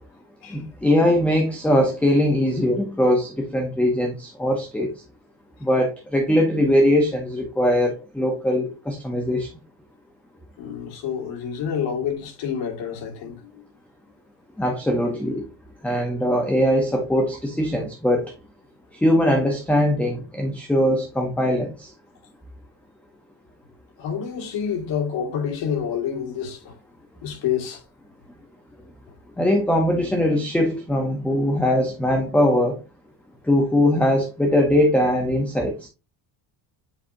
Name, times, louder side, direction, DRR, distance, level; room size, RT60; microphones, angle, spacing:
voice 1, 0.5-4.9 5.6-9.5 14.6-15.5 15.8-18.3 18.9-21.9 29.4-32.8 33.5-35.9, left 1 dB, 5° left, 0.7 m, -21 dB
voice 2, 10.6-13.6 24.0-26.7 27.2-27.8, left 8 dB, 75° left, 2.0 m, -28 dB
7.6 x 4.9 x 2.6 m
cardioid pair, 180°, 45 cm